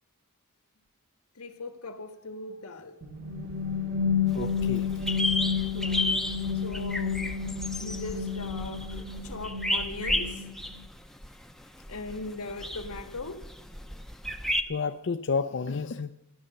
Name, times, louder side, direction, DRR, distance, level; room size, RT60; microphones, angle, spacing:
voice 1, 1.3-3.0 5.7-6.1 6.5-10.5 11.9-13.4, left 2 dB, 85° left, 6 dB, 1.6 m, -40 dB
sound 1, 3.0-10.8, left 6 dB, 45° right, 1.8 m, -31 dB
voice 2, 4.3-4.9 14.7-16.1, left 5 dB, 55° left, 7 dB, 0.5 m, -30 dB
sound 2, 4.3-14.6, left 1 dB, ahead, 0.7 m, -33 dB
14.5 x 10.0 x 6.7 m, 0.86 s
head